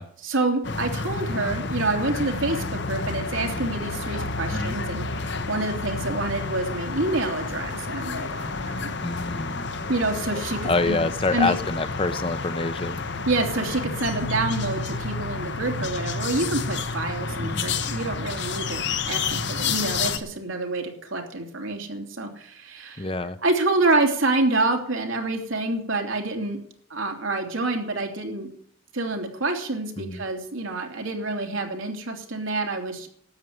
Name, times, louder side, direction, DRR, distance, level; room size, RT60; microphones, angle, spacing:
voice 1, 0.2-8.9 9.9-11.0 11.3-11.5 13.3-23.1 23.4-26.6 26.9-28.5 28.9-33.1, right 2 dB, 70° right, 3 dB, 3.1 m, -27 dB
sound 1, 0.6-20.2, left 4 dB, 55° left, 1.1 m, -30 dB
voice 2, 9.0-9.7 10.6-13.0 17.4-17.7 23.0-23.4 30.0-30.2, left 2 dB, 25° left, 11 dB, 0.8 m, -27 dB
13.0 x 8.5 x 9.5 m, 0.64 s
head